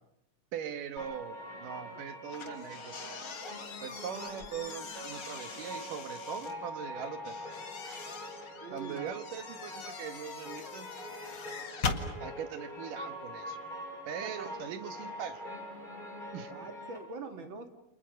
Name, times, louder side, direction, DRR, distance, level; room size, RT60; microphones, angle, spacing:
voice 1, 0.5-3.1 3.8-7.4 7.8-8.0 8.7-10.9 12.2-13.6 14.1-15.4 16.3-16.5, right 8 dB, 70° right, 10 dB, 3.0 m, -41 dB
sound 1, 1.0-17.0, left 1 dB, 10° left, 6.9 m, -44 dB
sound 2, 2.3-6.5 7.2-12.1, left 5 dB, 40° left, 1.9 m, -41 dB
voice 2, 8.6-9.1 14.2-14.6 16.5-17.8, right 4 dB, 40° right, 7 dB, 2.1 m, -44 dB
30.0 x 28.0 x 6.6 m, 0.78 s
omnidirectional pair, 4.0 m